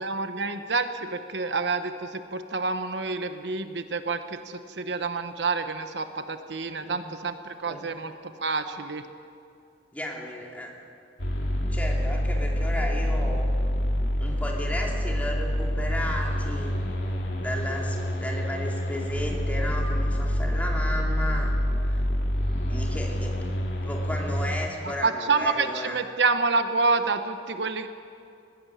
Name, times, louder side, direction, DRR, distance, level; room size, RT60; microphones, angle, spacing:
voice 1, 0.0-8.1 8.4-9.1 24.8-27.9, right 4 dB, 80° right, 9 dB, 1.1 m, -28 dB
voice 2, 9.9-10.7 11.7-13.5 14.2-16.7 17.4-21.5 21.9-22.0 22.7-23.5 23.8-26.0, left 1 dB, 10° left, -1 dB, 2.8 m, -34 dB
sound 1, 11.2-24.7, equal, 75° left, 2.4 m, -27 dB
19.5 x 16.5 x 8.5 m, 2.4 s
head